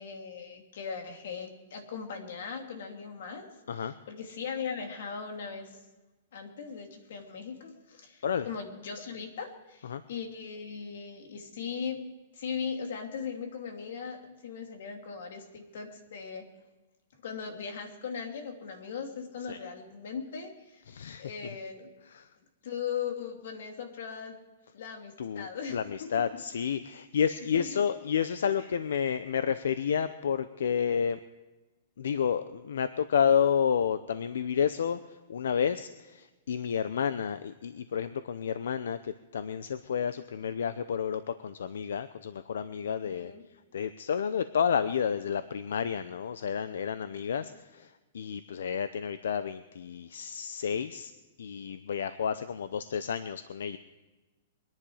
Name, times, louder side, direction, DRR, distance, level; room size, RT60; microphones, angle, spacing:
voice 1, 0.0-5.8 6.3-12.0 12.3-16.5 17.2-20.8 21.2-21.9 22.6-24.4 24.7-26.1 27.5-27.7 43.0-43.4 47.4-47.6, left 6 dB, 65° left, 4 dB, 2.8 m, -39 dB
voice 2, 20.9-21.2 22.1-22.3 25.2-31.2 32.0-43.3 43.7-51.1 51.4-53.8, left 7 dB, 90° left, 13 dB, 0.6 m, -30 dB
23.0 x 10.5 x 4.9 m, 1.2 s
hypercardioid pair, 165°, 0 cm